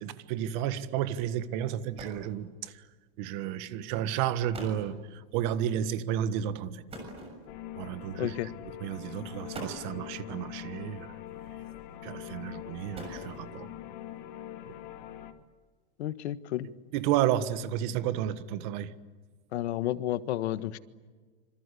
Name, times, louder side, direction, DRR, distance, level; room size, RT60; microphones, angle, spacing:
voice 1, 0.0-2.8 3.2-6.8 7.8-8.3 8.8-11.1 12.0-13.7 14.7-14.8 16.9-18.9, right 10 dB, 45° right, 1.6 m, -32 dB
sound 1, 1.7-2.3 3.3-3.6 4.2-4.3 4.5-4.9 6.9-7.7 8.7-8.8 9.3-10.0 11.3-11.8 12.6-13.6, right 1 dB, 15° right, 6.8 m, -44 dB
sound 2, 7.5-15.3, left 12 dB, 50° left, 2.4 m, -43 dB
voice 2, 8.2-8.5 16.0-16.7 19.5-20.8, left 13 dB, 85° left, 1.5 m, -31 dB
27.0 x 26.5 x 8.4 m
supercardioid pair, 165°, 32 cm